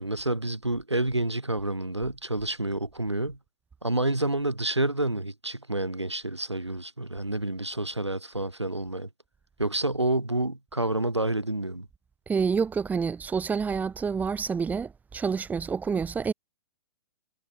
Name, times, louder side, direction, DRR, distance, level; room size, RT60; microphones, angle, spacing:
voice 1, 0.0-3.4 3.8-9.1 9.6-11.9, right 1 dB, 90° right, 4.9 m, -29 dB
voice 2, 12.3-16.3, right 5 dB, 10° right, 3.6 m, -28 dB
figure-of-eight pair, 115°, 14 cm